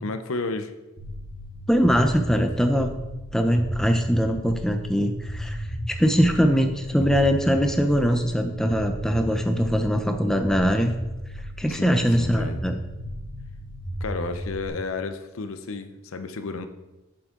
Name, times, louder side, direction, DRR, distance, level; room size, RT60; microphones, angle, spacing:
voice 1, 0.0-0.7 11.7-12.6 14.0-16.7, left 3 dB, 80° left, 9 dB, 0.7 m, -32 dB
sound 1, 1.0-14.7, equal, 35° left, 2.8 m, -34 dB
voice 2, 1.7-2.9 3.3-10.9 11.6-12.8, equal, 5° left, 5 dB, 0.5 m, -22 dB
8.3 x 7.9 x 3.7 m, 1.0 s
head